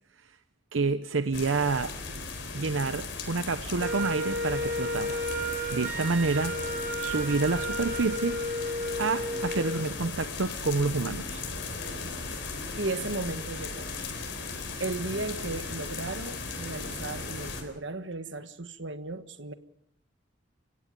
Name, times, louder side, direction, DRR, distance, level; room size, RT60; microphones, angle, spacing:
voice 1, 0.7-1.9 2.5-5.2 5.7-6.5 7.0-8.4 9.0-11.4, right 3 dB, 90° right, 10 dB, 0.8 m, -28 dB
sound 1, 1.3-17.6, left 4 dB, 65° left, 4.2 m, -37 dB
Wind instrument woodwind instrument, 3.8-9.9, equal, 40° right, 2.3 m, -32 dB
voice 2, 12.7-13.9 14.8-19.5, right 2 dB, 70° right, 10 dB, 1.6 m, -35 dB
29.5 x 17.0 x 5.4 m, 0.72 s
head